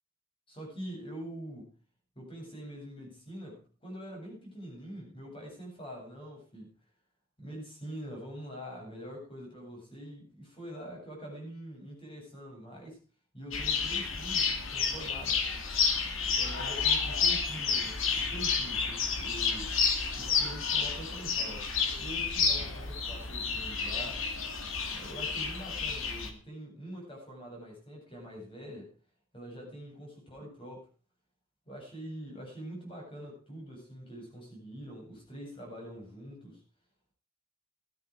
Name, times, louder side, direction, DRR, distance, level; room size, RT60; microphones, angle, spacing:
voice 1, 0.5-1.8 2.2-6.7 7.4-13.0 13.3-15.5 16.4-19.8 20.2-21.7 22.0-24.4 24.9-28.9 29.3-30.9 31.7-36.6, equal, 25° left, -1 dB, 7.8 m, -44 dB
sound 1, 13.5-26.3, left 5 dB, 70° left, 2.6 m, -30 dB
15.0 x 13.0 x 4.9 m, 0.38 s
head